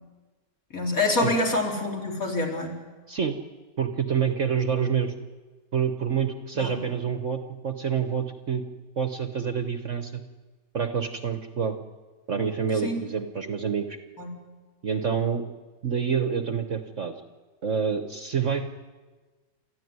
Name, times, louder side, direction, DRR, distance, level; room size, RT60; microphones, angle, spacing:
voice 1, 0.7-2.7 6.6-6.8 12.8-13.0 14.2-14.3, left 2 dB, 50° left, 0 dB, 4.4 m, -26 dB
voice 2, 3.8-5.1 5.7-8.6 9.0-10.2 10.7-11.8 12.3-14.0 14.8-15.4 15.8-17.1 17.6-18.6, right 7 dB, 45° right, 8 dB, 1.3 m, -27 dB
29.0 x 14.0 x 9.6 m, 1.3 s
omnidirectional pair, 1.9 m